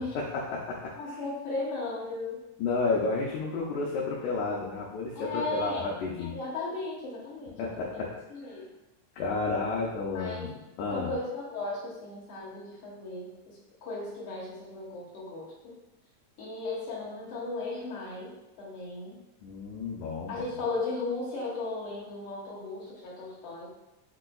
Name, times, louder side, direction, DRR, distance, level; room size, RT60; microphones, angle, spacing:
voice 1, 0.1-0.9 2.6-6.3 7.6-8.1 9.2-10.5 10.8-11.1 19.4-20.4, left 4 dB, 80° left, -4 dB, 1.8 m, -31 dB
voice 2, 0.9-2.4 5.2-5.8 6.2-8.0 8.3-8.7 10.1-10.5 10.9-15.7 16.4-18.3 18.6-19.2 20.3-23.7, left 2 dB, 65° left, -5 dB, 1.5 m, -36 dB
5.9 x 2.2 x 2.2 m, 0.97 s
omnidirectional pair, 3.4 m